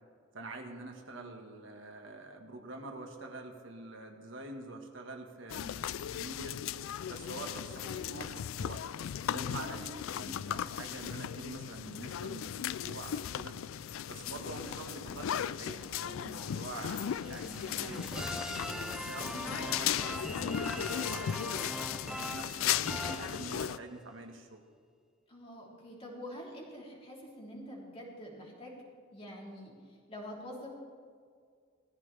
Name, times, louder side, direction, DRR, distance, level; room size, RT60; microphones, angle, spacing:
voice 1, 0.3-6.6 7.1-8.8 9.3-13.6 14.1-18.5 18.9-21.6 22.2-24.6, right 2 dB, 65° right, 3 dB, 1.6 m, -45 dB
sound 1, 5.5-23.8, left 10 dB, 70° left, 0.3 m, -37 dB
sound 2, 15.0-23.9, equal, 5° right, 0.4 m, -42 dB
voice 2, 25.3-28.8 29.1-29.7 30.1-30.7, equal, 30° left, -3 dB, 3.2 m, -46 dB
18.5 x 14.0 x 3.4 m, 2.1 s
head